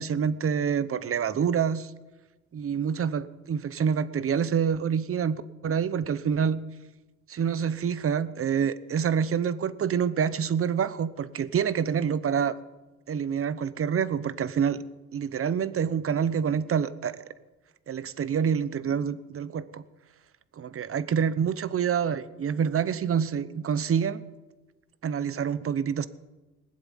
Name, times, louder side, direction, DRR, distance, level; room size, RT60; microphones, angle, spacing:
voice 1, 0.0-1.9 2.5-6.6 7.3-12.6 13.1-14.8 15.1-17.2 17.9-19.8 20.6-24.2 25.0-26.1, right 7 dB, 45° right, 15 dB, 1.0 m, -27 dB
20.5 x 7.8 x 9.2 m, 1.1 s
cardioid pair, 90°, 30 cm